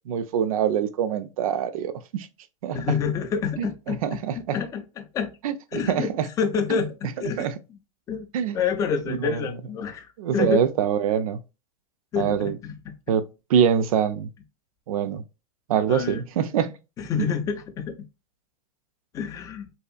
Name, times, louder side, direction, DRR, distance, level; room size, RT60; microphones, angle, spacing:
voice 1, 0.1-2.3 2.6-2.8 3.6-4.6 5.4-6.3 6.7-6.8 7.4-7.6 8.3-8.6 9.1-9.4 10.2-11.4 12.2-12.6 13.1-14.3 14.9-15.2 15.7-16.7 17.2-17.3, right 8 dB, 75° right, 0.4 m, -24 dB
voice 2, 2.7-4.2 4.5-5.4 5.7-6.1 6.4-7.8 8.1-8.3 8.5-10.6 12.1-13.2 15.9-16.2 17.0-18.0 19.1-19.7, left 6 dB, 20° left, 0.4 m, -28 dB
2.7 x 2.4 x 2.3 m
hypercardioid pair, 130°, 18 cm